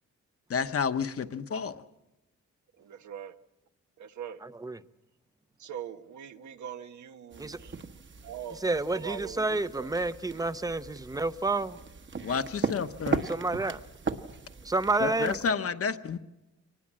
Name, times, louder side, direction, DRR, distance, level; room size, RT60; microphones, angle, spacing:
voice 1, 0.5-1.8 12.2-13.2 15.0-16.2, left 6 dB, 50° left, 1.1 m, -30 dB
voice 2, 2.8-3.4 4.0-4.4 5.6-7.7 8.2-8.6 8.9-9.9 14.9-15.3, right 9 dB, 80° right, 1.2 m, -42 dB
voice 3, 4.4-4.8 7.4-7.6 8.6-11.8 13.3-13.8 14.6-15.4, right 2 dB, 10° right, 0.7 m, -29 dB
sound 1, 7.3-15.5, right 4 dB, 40° right, 1.2 m, -38 dB
24.5 x 20.0 x 7.5 m
wide cardioid pair, 120°, 29 cm